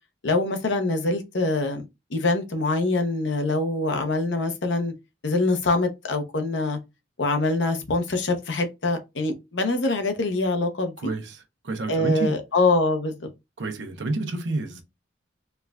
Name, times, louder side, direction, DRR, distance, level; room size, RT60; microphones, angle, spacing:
voice 1, 0.2-1.8 2.1-4.9 5.2-6.8 7.2-11.1 11.9-13.3, left 2 dB, 80° left, 0.8 m, -24 dB
voice 2, 11.0-12.4 13.6-14.8, right 2 dB, 80° right, 0.8 m, -29 dB
4.5 x 2.4 x 2.2 m
head